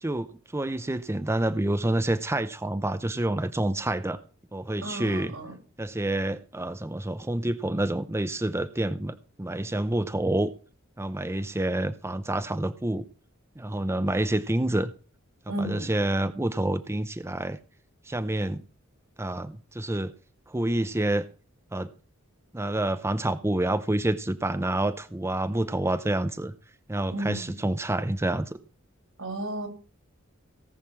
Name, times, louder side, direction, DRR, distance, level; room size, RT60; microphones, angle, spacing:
voice 1, 0.0-4.2 4.5-5.3 5.8-10.5 11.0-13.1 13.6-14.9 15.6-17.6 18.0-18.6 19.2-20.1 20.5-21.2 21.7-21.9 22.5-26.5 26.9-28.6, right 1 dB, 15° right, 11 dB, 0.6 m, -28 dB
voice 2, 4.8-5.5 15.5-15.9 27.1-27.6 29.2-29.7, right 1 dB, 75° right, 2 dB, 5.2 m, -33 dB
17.5 x 6.6 x 7.3 m, 0.38 s
head